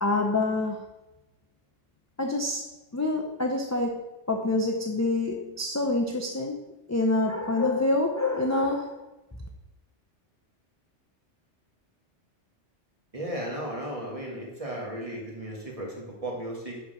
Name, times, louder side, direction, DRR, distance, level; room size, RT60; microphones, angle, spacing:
voice 1, 0.0-0.8 2.2-2.6 2.9-6.6 6.9-9.0, left 2 dB, 20° left, 0 dB, 0.5 m, -26 dB
voice 2, 13.1-16.8, right 1 dB, 30° right, -2 dB, 1.8 m, -35 dB
5.5 x 4.8 x 6.1 m, 1.0 s
omnidirectional pair, 1.2 m